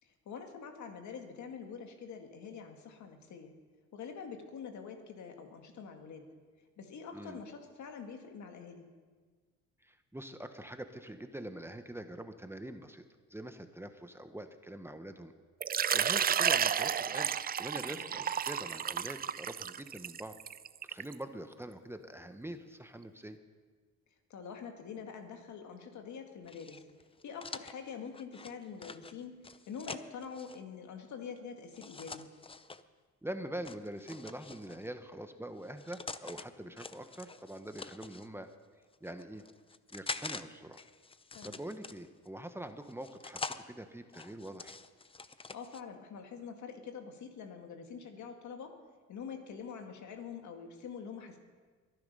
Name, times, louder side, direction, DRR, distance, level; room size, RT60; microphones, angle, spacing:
voice 1, 0.0-3.6 3.9-6.3 6.8-8.9 17.9-18.2 24.3-26.8 27.2-32.3 41.3-41.6 45.5-48.8 49.1-51.4, left 6 dB, 70° left, 5 dB, 2.0 m, -45 dB
voice 2, 9.8-13.0 13.3-15.3 15.9-20.4 20.9-23.4 33.2-38.5 39.0-39.4 39.9-40.8 41.4-44.8, right 1 dB, 10° right, 8 dB, 1.0 m, -44 dB
Water / Liquid, 15.6-21.1, right 8 dB, 30° right, 0.4 m, -32 dB
sound 1, 26.5-30.6 31.7-32.8 33.6-34.9 35.6-36.4 36.8-38.3 38.9-40.4 40.7-42.3 42.8-43.6 44.1-45.8, left 4 dB, 20° left, 0.6 m, -45 dB
22.5 x 11.0 x 5.4 m, 1.5 s
cardioid pair, 90°, 30 cm